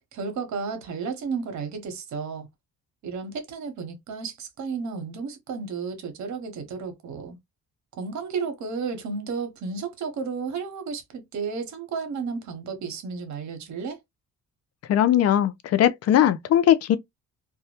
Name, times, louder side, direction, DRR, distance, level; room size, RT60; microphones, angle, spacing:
voice 1, 0.1-2.5 3.0-7.4 8.0-14.0, right 5 dB, 70° right, 0.9 m, -32 dB
voice 2, 14.9-17.0, left 11 dB, 55° left, 0.4 m, -19 dB
2.2 x 2.0 x 2.8 m
cardioid pair, 90°, 30 cm